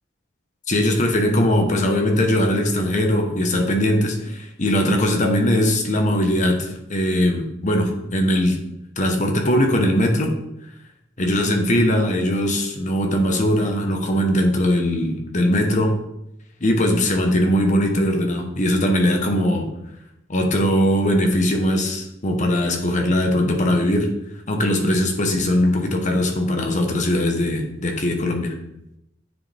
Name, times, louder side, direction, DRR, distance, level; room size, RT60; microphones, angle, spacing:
voice 1, 0.7-8.6 9.0-10.3 11.2-15.9 16.6-19.7 20.3-24.1 24.5-28.5, left 1 dB, 40° left, 3 dB, 1.1 m, -20 dB
9.2 x 4.7 x 3.5 m, 0.83 s
head